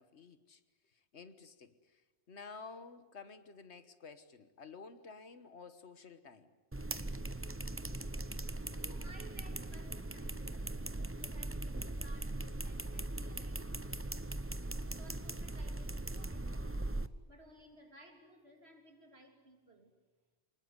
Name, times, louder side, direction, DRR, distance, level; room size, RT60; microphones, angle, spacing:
voice 1, 0.0-6.5, left 4 dB, 75° left, 11 dB, 1.6 m, -52 dB
sound 1, 6.7-17.1, right 2 dB, 15° right, 0.7 m, -40 dB
voice 2, 7.9-8.3 8.7-14.3 14.9-16.9 17.3-19.9, right 1 dB, 65° right, 4 dB, 3.6 m, -59 dB
25.0 x 20.5 x 9.7 m, 1.3 s
omnidirectional pair, 1.1 m